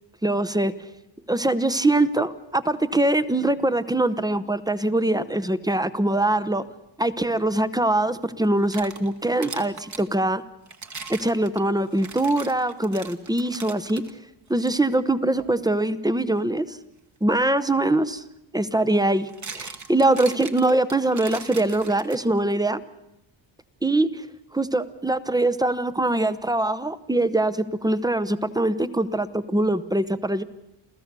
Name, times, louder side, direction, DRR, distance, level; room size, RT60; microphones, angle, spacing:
voice 1, 0.2-0.7 1.3-6.6 7.0-10.4 11.1-14.0 14.5-16.8 17.2-18.2 18.5-22.8 23.8-24.3 24.5-30.4, right 2 dB, 10° right, 12 dB, 0.8 m, -23 dB
sound 1, 8.4-10.1 10.7-14.1 14.6-14.7 15.4-15.6 17.7-17.8 19.0-22.5, right 4 dB, 35° right, 1.6 m, -40 dB
28.5 x 15.0 x 6.8 m, 0.90 s
cardioid pair, 105°, 48 cm